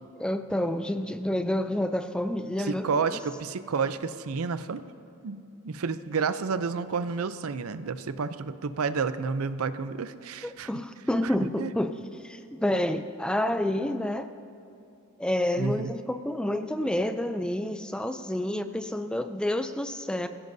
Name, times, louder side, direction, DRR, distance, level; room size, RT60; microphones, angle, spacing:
voice 1, 0.2-3.2 10.4-14.3 15.2-20.3, left 1 dB, 5° left, 9 dB, 0.4 m, -29 dB
voice 2, 2.6-4.8 5.2-10.7 11.2-11.7 15.6-15.9, right 5 dB, 80° right, 12 dB, 0.5 m, -30 dB
24.5 x 15.5 x 2.7 m, 2.5 s
head